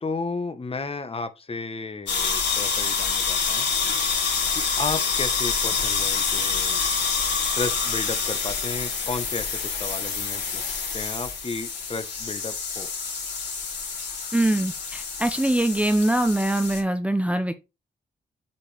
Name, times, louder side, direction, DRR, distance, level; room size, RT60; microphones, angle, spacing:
voice 1, 0.0-3.7 4.5-6.8 7.5-10.6 10.9-12.9, left 4 dB, 30° left, 1.2 m, -33 dB
sound 1, 2.1-16.8, left 5 dB, 80° left, 3.5 m, -27 dB
voice 2, 14.3-17.5, right 1 dB, 5° right, 0.7 m, -23 dB
8.2 x 5.1 x 3.4 m
cardioid pair, 95°, 18 cm